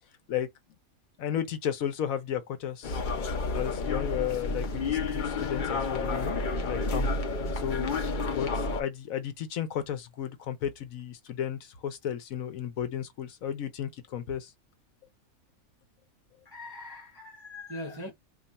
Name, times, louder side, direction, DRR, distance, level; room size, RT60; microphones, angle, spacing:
voice 1, 1.2-3.0 3.5-7.1 7.5-8.0 8.2-14.5, left 9 dB, 75° left, 1.1 m, -34 dB
sound 1, 2.8-8.8, left 3 dB, 50° left, 0.6 m, -30 dB
voice 2, 16.4-18.1, left 1 dB, 30° right, 0.4 m, -41 dB
2.9 x 2.4 x 4.0 m
omnidirectional pair, 1.5 m